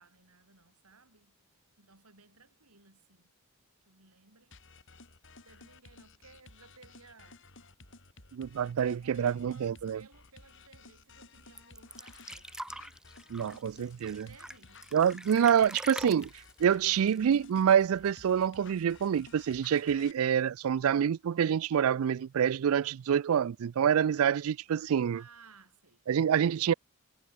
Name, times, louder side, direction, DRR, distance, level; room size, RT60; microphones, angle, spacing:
voice 1, 0.0-1.3 1.8-3.3 3.8-5.0 5.4-7.4 8.5-13.0 14.1-15.6 25.1-26.0, right 4 dB, 90° right, 6.8 m, -59 dB
sound 1, 4.5-20.1, left 3 dB, 60° left, 6.0 m, -55 dB
voice 2, 8.3-10.0 13.3-14.3 14.9-16.3 16.6-25.2 26.1-26.7, right 8 dB, 70° right, 0.3 m, -27 dB
sound 2, 11.6-18.0 18.3-18.4 18.7-19.4 20.2-20.3, right 1 dB, 5° right, 0.4 m, -45 dB
head